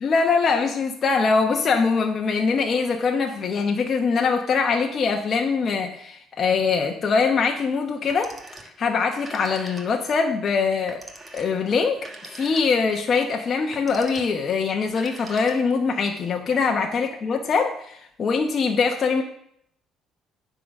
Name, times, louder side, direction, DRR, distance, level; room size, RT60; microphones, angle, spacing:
voice 1, 0.0-8.3 8.6-11.0 11.3-19.2, left 5 dB, 45° left, 2 dB, 0.9 m, -23 dB
Telephone, 8.0-8.8 9.1-10.2 10.9-13.0 13.6-14.4 14.9-15.9, right 2 dB, 20° right, 1.4 m, -43 dB
10.0 x 3.9 x 6.3 m, 0.69 s
cardioid pair, 90°, 0 cm